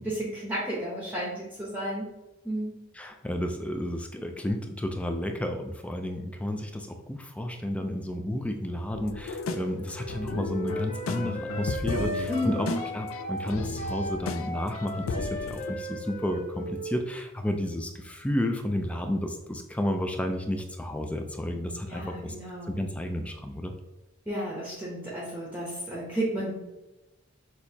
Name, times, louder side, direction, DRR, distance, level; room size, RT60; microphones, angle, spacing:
voice 1, 0.0-2.1 2.4-2.7 12.3-12.8 21.8-22.7 24.3-26.5, equal, 10° right, -5 dB, 0.8 m, -32 dB
voice 2, 2.9-12.7 12.9-22.4 22.6-23.7, left 1 dB, 5° left, 4 dB, 0.3 m, -32 dB
sound 1, 8.9-15.7, left 4 dB, 85° left, 0.4 m, -35 dB
Wind instrument woodwind instrument, 9.9-17.4, right 1 dB, 40° left, 0.8 m, -36 dB
6.1 x 2.8 x 2.7 m, 1.0 s
head